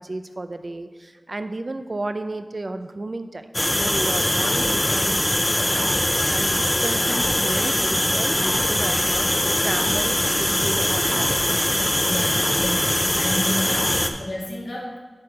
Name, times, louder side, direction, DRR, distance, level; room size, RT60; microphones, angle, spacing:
voice 1, 0.0-11.3, right 2 dB, 60° right, 9 dB, 0.5 m, -33 dB
sound 1, 3.5-14.1, left 1 dB, 20° left, 0.6 m, -22 dB
voice 2, 12.0-15.0, left 1 dB, 90° left, -5 dB, 2.2 m, -32 dB
8.7 x 4.4 x 5.0 m, 1.4 s
wide cardioid pair, 65°, 0 cm